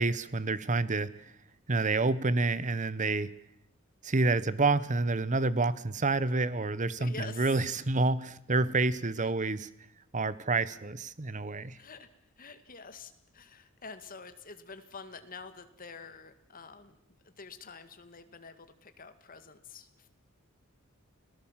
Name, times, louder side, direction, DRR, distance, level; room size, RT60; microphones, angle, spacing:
voice 1, 0.0-1.3 1.7-3.3 4.0-9.7 10.1-11.8, right 3 dB, 35° right, 17 dB, 1.0 m, -28 dB
voice 2, 6.9-7.8 9.2-9.3 11.8-12.1 12.4-17.0 17.2-20.1, left 4 dB, 40° left, 9 dB, 2.0 m, -47 dB
29.5 x 18.5 x 7.5 m, 0.76 s
head